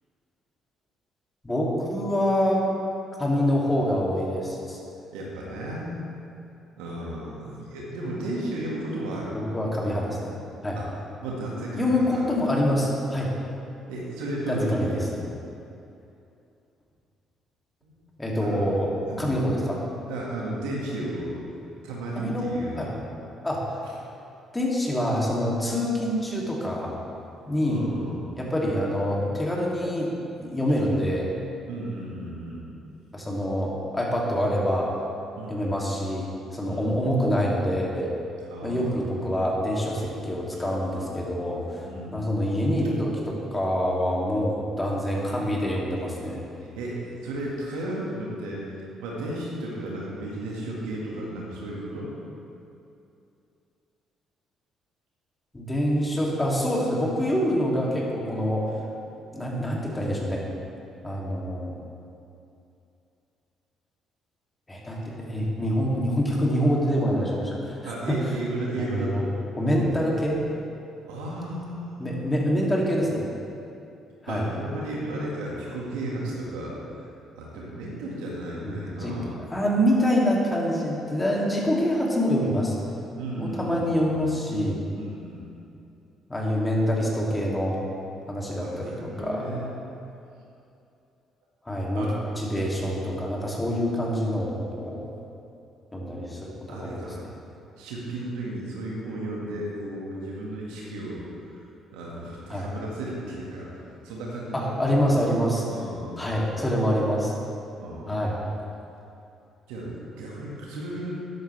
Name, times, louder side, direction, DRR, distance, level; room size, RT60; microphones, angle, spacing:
voice 1, 1.4-2.6 3.2-4.8 9.3-10.3 10.6-10.8 11.7-13.3 14.5-15.0 18.2-18.9 19.2-19.8 22.2-22.5 22.7-22.9 23.4-23.6 24.5-26.9 27.4-27.8 28.3-30.1 30.4-31.3 33.1-34.9 35.5-38.1 38.6-46.4 55.5-58.7 59.3-60.4 61.0-61.7 64.7-68.2 68.8-69.2 69.6-70.4 72.0-73.2 74.2-74.4 78.6-79.2 79.5-82.7 83.3-84.8 86.3-87.8 88.3-89.4 91.6-92.1 92.4-95.0 95.9-97.0 102.5-102.7 104.5-105.6 106.2-107.3 108.1-108.4, equal, 20° left, -3 dB, 3.2 m, -26 dB
voice 2, 5.1-6.0 6.8-9.3 10.7-10.9 11.2-12.2 13.9-15.1 17.8-18.1 18.4-18.7 19.1-19.3 20.1-21.5 21.8-23.0 23.8-23.9 27.7-28.3 31.7-32.7 35.4-35.6 36.7-36.9 38.5-39.1 41.8-42.3 46.6-52.1 67.8-69.3 71.1-72.6 74.3-77.1 77.4-79.4 83.2-84.4 84.9-85.5 88.6-89.8 91.9-92.2 96.7-97.2 97.8-101.5 101.9-103.7 104.0-105.1 105.7-106.5 107.8-108.1 109.7-111.2, right 1 dB, 75° right, -4 dB, 2.2 m, -34 dB
13.0 x 11.0 x 3.6 m, 2.7 s
hypercardioid pair, 50°, 0 cm